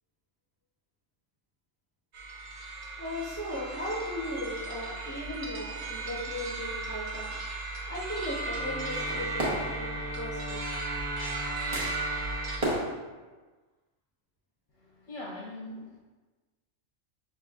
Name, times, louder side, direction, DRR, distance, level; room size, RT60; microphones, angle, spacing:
sound 1, 2.1-12.6, right 3 dB, 50° right, 0.5 m, -36 dB
voice 1, 3.0-7.3 7.6-10.6, left 1 dB, 10° left, -6 dB, 0.7 m, -37 dB
sound 2, 6.8-7.3 8.3-12.8, right 1 dB, 30° right, 0.9 m, -37 dB
Wind instrument woodwind instrument, 8.5-12.8, left 1 dB, 90° left, 1.0 m, -41 dB
voice 2, 14.7-16.0, left 1 dB, 70° left, -7 dB, 1.2 m, -42 dB
5.6 x 3.0 x 2.3 m, 1.3 s
omnidirectional pair, 1.3 m